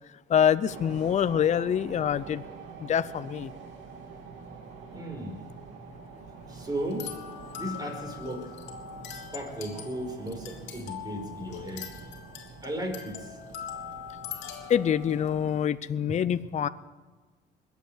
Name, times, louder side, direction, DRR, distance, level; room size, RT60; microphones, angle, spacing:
voice 1, 0.3-2.4 2.8-3.5 14.7-16.7, left 8 dB, 40° left, 15 dB, 0.6 m, -25 dB
sound 1, 0.6-15.6, right 4 dB, 80° right, 2.5 m, -46 dB
voice 2, 4.9-5.4 6.5-7.1 7.5-8.5 9.1-11.9 12.6-13.4, right 1 dB, 20° right, 2 dB, 5.1 m, -35 dB
sound 2, 6.8-15.6, left 9 dB, 80° left, 2.4 m, -42 dB
21.5 x 8.2 x 8.0 m, 1.3 s
cardioid pair, 85°, 19 cm